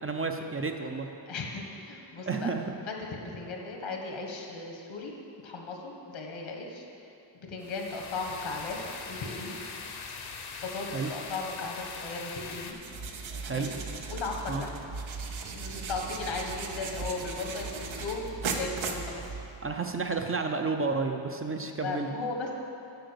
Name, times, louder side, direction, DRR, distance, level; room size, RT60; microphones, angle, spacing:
voice 1, 0.0-1.1 2.3-2.7 10.9-11.1 13.4-13.7 14.5-14.6 19.6-22.1, right 4 dB, 30° right, 4 dB, 0.4 m, -31 dB
voice 2, 1.3-2.5 2.9-5.1 5.4-6.8 7.3-8.8 9.1-9.5 10.6-12.8 13.5-13.7 14.1-14.7 15.5-19.4 21.8-22.5, left 3 dB, 80° left, 1 dB, 1.4 m, -36 dB
sound 1, 7.6-12.7, left 5 dB, 55° left, 0.8 m, -41 dB
sound 2, 12.7-19.7, right 4 dB, 85° right, 0.9 m, -37 dB
7.8 x 6.0 x 6.8 m, 2.7 s
wide cardioid pair, 145°, 46 cm